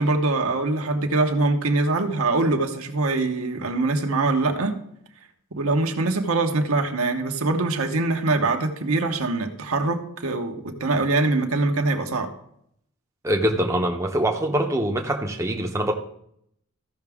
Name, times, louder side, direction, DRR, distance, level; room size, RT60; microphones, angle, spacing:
voice 1, 0.0-4.8 5.5-12.3, right 3 dB, 75° right, 1.1 m, -23 dB
voice 2, 13.2-15.9, right 1 dB, 15° right, 0.7 m, -23 dB
14.5 x 5.9 x 3.5 m
head